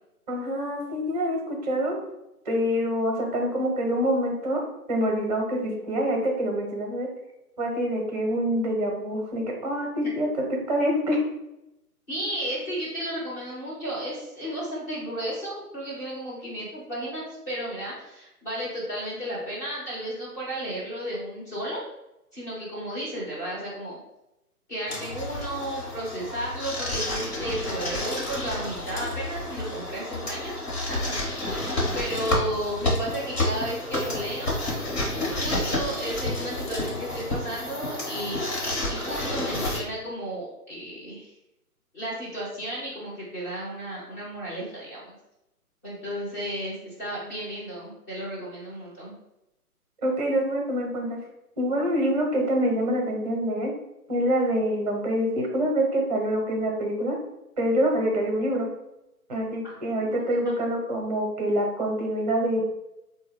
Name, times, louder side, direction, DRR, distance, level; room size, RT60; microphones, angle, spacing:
voice 1, 0.3-2.0 2.5-4.6 4.9-7.1 7.6-11.2 50.0-51.2 51.6-53.7 54.1-57.2 57.6-58.7 59.3-62.8, equal, 25° right, 1 dB, 0.8 m, -26 dB
voice 2, 12.1-21.9 22.3-24.0 24.7-30.5 30.9-31.1 31.6-31.7 31.9-34.8 35.4-41.3 41.9-45.1 45.8-49.1 59.6-60.5, right 1 dB, 10° left, -7 dB, 0.7 m, -33 dB
sound 1, 24.9-39.8, left 1 dB, 45° left, 1.2 m, -30 dB
3.7 x 2.2 x 3.6 m, 0.89 s
figure-of-eight pair, 140°, 46 cm